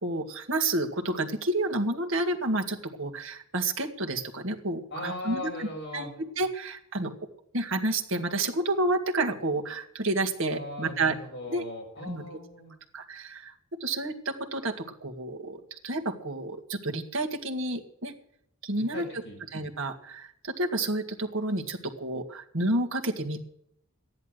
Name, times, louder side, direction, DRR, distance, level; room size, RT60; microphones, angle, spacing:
voice 1, 0.0-5.7 5.9-7.1 7.5-11.2 11.5-11.6 12.0-12.2 12.9-13.5 13.8-18.1 18.6-19.2 19.5-23.4, right 2 dB, 65° right, 3 dB, 2.0 m, -30 dB
voice 2, 4.9-6.1 10.5-12.7 18.8-19.4, left 1 dB, 50° left, 0 dB, 7.2 m, -39 dB
14.0 x 11.0 x 7.8 m, 0.72 s
head